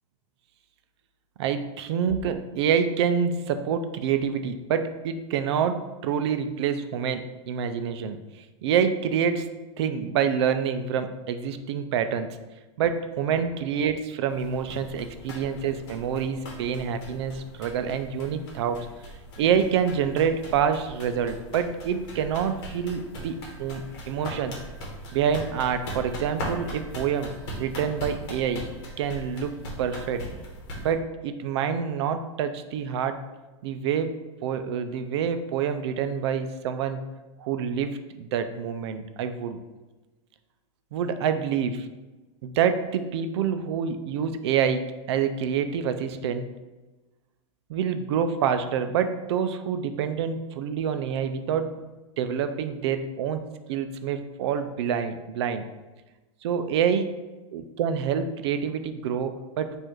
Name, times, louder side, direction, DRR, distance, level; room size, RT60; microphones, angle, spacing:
voice 1, 1.4-8.2 8.6-9.5 9.8-12.4 12.8-18.9 19.4-24.6 25.1-28.7 29.0-30.3 30.8-33.2 33.6-34.1 34.4-37.0 37.4-39.6 40.9-41.9 42.4-46.5 47.7-51.7 52.2-53.4 53.7-55.6 56.4-57.2 57.5-59.8, right 7 dB, 60° right, 9 dB, 0.4 m, -27 dB
sound 1, 14.3-30.9, equal, 45° left, 1.2 m, -40 dB
4.5 x 2.5 x 4.4 m, 1.2 s
supercardioid pair, 170°, 16 cm